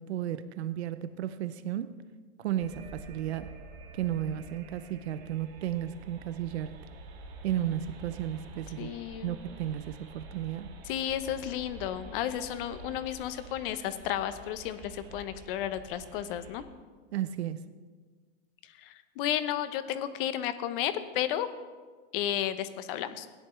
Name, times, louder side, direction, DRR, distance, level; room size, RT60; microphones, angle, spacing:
voice 1, 0.0-2.0 2.4-3.5 3.9-6.8 7.4-8.9 9.2-10.7 17.1-17.6, right 11 dB, 85° right, 0.6 m, -33 dB
sound 1, 2.6-16.6, right 2 dB, 65° right, 1.8 m, -48 dB
voice 2, 8.8-9.4 10.9-16.6 18.8-21.5 22.1-23.3, left 11 dB, 55° left, 0.9 m, -33 dB
16.5 x 10.0 x 3.3 m
hypercardioid pair, 125°, 32 cm